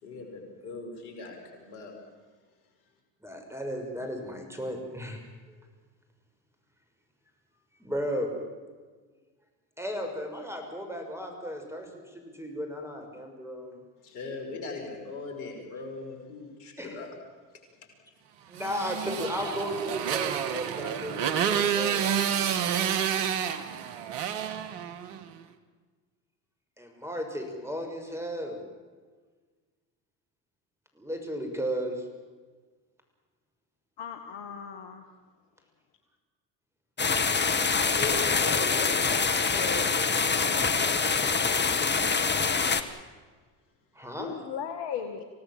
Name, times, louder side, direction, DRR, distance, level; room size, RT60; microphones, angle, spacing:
voice 1, 0.0-1.9 14.0-17.1 37.9-42.4, left 3 dB, 75° left, 3 dB, 5.6 m, -39 dB
voice 2, 3.2-5.2 5.5-5.6 7.8-8.4 9.8-13.8 16.8-17.0 18.5-22.0 26.8-28.6 30.9-32.0 43.9-44.3, equal, 5° right, 4 dB, 6.4 m, -35 dB
Motorcycle, 18.6-25.3, right 8 dB, 80° right, 1.7 m, -29 dB
voice 3, 34.0-35.0 44.2-45.2, left 8 dB, 60° left, 6 dB, 2.1 m, -36 dB
sound 1, 37.0-42.8, left 5 dB, 20° left, 1.7 m, -25 dB
26.5 x 17.5 x 7.6 m, 1.4 s
hypercardioid pair, 70°, 48 cm